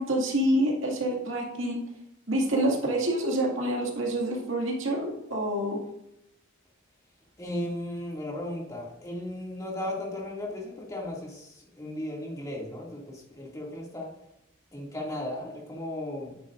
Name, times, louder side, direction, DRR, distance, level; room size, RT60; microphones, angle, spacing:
voice 1, 0.0-1.8 2.3-5.8, right 1 dB, 70° right, 0 dB, 2.1 m, -27 dB
voice 2, 7.4-14.1 14.7-16.4, left 1 dB, 15° left, -3 dB, 2.2 m, -36 dB
11.0 x 9.5 x 2.5 m, 0.84 s
head